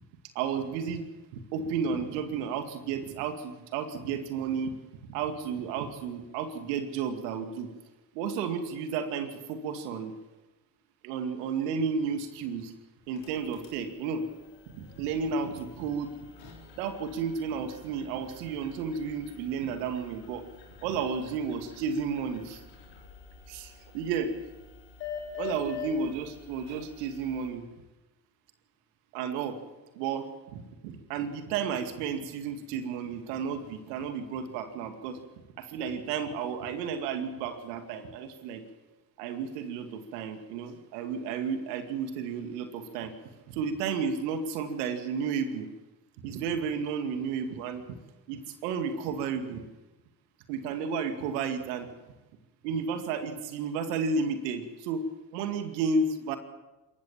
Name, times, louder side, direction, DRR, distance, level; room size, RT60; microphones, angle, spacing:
voice 1, 0.4-1.0 1.5-4.7 5.1-7.7 8.1-10.2 11.0-12.7 13.1-14.2 14.8-16.1 16.8-20.4 20.8-22.6 23.5-24.3 25.4-27.7 29.1-29.6 29.9-35.2 35.6-38.6 39.2-43.1 43.5-45.7 46.2-48.0 48.3-49.6 50.5-51.9 52.6-55.0 55.3-56.4, right 5 dB, 75° right, 7 dB, 2.3 m, -32 dB
sound 1, 13.0-27.5, left 6 dB, 85° left, 4.0 m, -46 dB
27.0 x 14.5 x 7.4 m, 1.1 s
hypercardioid pair, 55°, 49 cm